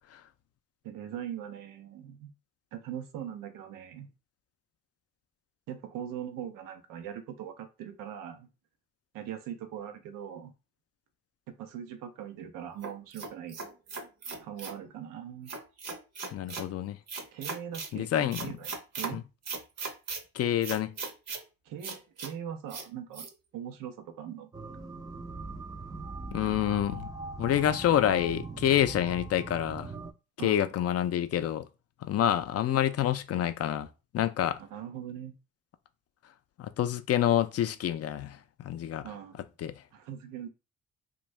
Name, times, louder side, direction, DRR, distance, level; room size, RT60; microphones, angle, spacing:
voice 1, 0.8-2.3 2.7-4.1 5.7-8.5 9.1-10.5 11.6-13.6 14.4-15.5 17.3-19.2 21.7-23.3 23.5-24.5 30.4-30.7 34.6-35.4 39.0-39.4 39.9-40.5, right 9 dB, 90° right, 0.6 m, -41 dB
sound 1, 12.8-14.8 15.5-16.7 17.1-17.9 18.3-19.1 19.4-20.2 20.6-21.4 21.8-22.3 22.7-22.9 23.1-23.3, right 4 dB, 50° right, 0.7 m, -38 dB
voice 2, 16.3-17.0 17.9-18.6 19.1-19.2 20.3-20.9 26.3-27.1 27.4-29.9 30.4-31.7 32.0-33.9 34.1-34.6 36.6-39.1 39.6-39.8, left 11 dB, 50° left, 0.4 m, -27 dB
sound 2, 24.5-30.1, right 3 dB, 15° right, 0.4 m, -40 dB
2.6 x 2.2 x 3.1 m
supercardioid pair, 65°, 32 cm